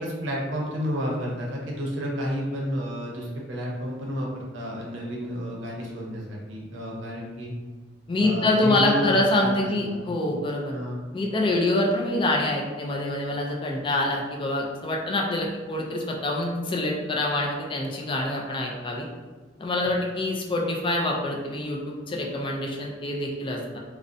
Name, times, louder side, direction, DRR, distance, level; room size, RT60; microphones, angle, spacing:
voice 1, 0.0-7.5 8.2-10.0 10.7-11.0, equal, 80° right, -2 dB, 0.6 m, -31 dB
voice 2, 8.1-10.7 11.1-19.1 19.6-23.8, left 2 dB, 25° left, -1 dB, 0.3 m, -26 dB
2.5 x 2.0 x 2.5 m, 1.3 s
head